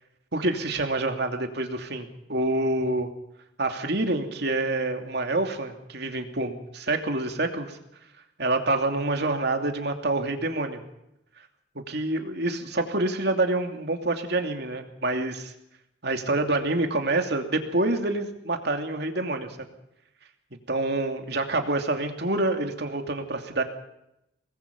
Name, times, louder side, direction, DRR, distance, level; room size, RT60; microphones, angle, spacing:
voice 1, 0.3-3.1 3.6-7.8 8.4-10.8 11.9-15.5 16.0-19.6 20.7-23.6, right 2 dB, 65° right, 5 dB, 2.8 m, -27 dB
26.0 x 20.5 x 5.4 m, 0.82 s
head